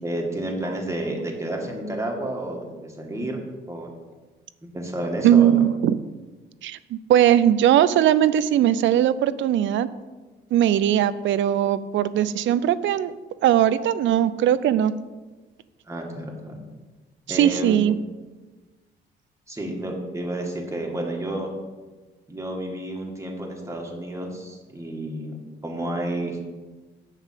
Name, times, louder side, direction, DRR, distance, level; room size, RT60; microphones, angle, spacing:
voice 1, 0.0-3.4 3.7-4.0 4.7-5.6 15.9-16.6 17.3-17.8 19.5-21.5 22.3-25.4 25.6-26.4, right 1 dB, 15° right, 0 dB, 1.9 m, -30 dB
voice 2, 5.2-5.9 6.6-9.9 10.5-13.1 13.4-14.9 17.3-17.9, right 11 dB, 75° right, 15 dB, 0.5 m, -19 dB
7.3 x 5.4 x 7.5 m, 1.3 s
cardioid pair, 90°, 20 cm